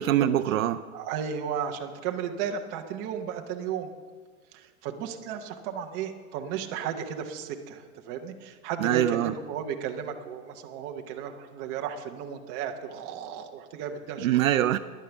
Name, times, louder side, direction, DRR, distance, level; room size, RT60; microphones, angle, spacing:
voice 1, 0.0-0.8 8.8-9.3 14.2-14.8, right 12 dB, 65° right, 11 dB, 0.6 m, -23 dB
voice 2, 0.9-3.9 4.5-14.6, right 7 dB, 25° right, 4 dB, 0.8 m, -34 dB
10.5 x 10.0 x 7.0 m, 1.5 s
hypercardioid pair, 155°, 45 cm